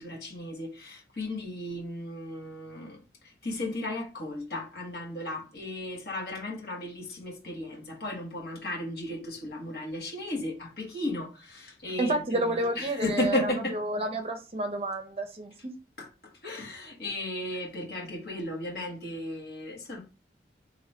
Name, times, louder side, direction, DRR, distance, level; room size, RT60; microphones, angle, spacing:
voice 1, 0.0-3.0 3.2-13.8 16.0-16.1 16.4-20.0, left 1 dB, 60° left, 1.4 m, -35 dB
voice 2, 12.0-13.4 13.7-15.7, right 1 dB, 35° right, 0.5 m, -30 dB
3.0 x 2.8 x 4.2 m
head